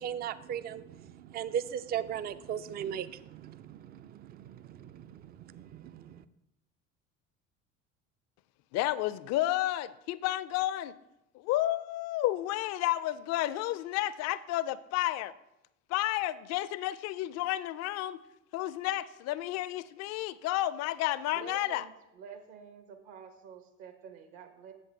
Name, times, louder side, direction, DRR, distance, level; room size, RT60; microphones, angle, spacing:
voice 1, 0.0-6.2, right 9 dB, 25° right, 15 dB, 0.3 m, -38 dB
voice 2, 8.7-10.9 11.3-15.3 15.9-18.2 18.5-21.8, left 15 dB, 45° left, 17 dB, 0.4 m, -31 dB
voice 3, 21.3-24.7, right 7 dB, 60° right, 7 dB, 1.1 m, -49 dB
7.8 x 7.7 x 3.4 m, 0.88 s
hypercardioid pair, 65°, 39 cm